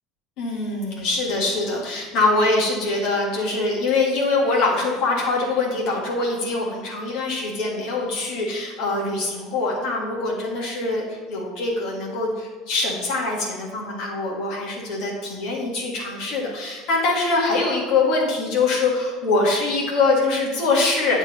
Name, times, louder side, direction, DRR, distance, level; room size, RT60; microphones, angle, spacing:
voice 1, 0.4-21.2, left 3 dB, 55° left, -3 dB, 1.7 m, -23 dB
9.5 x 3.6 x 4.2 m, 1.4 s
figure-of-eight pair, 70°, 0 cm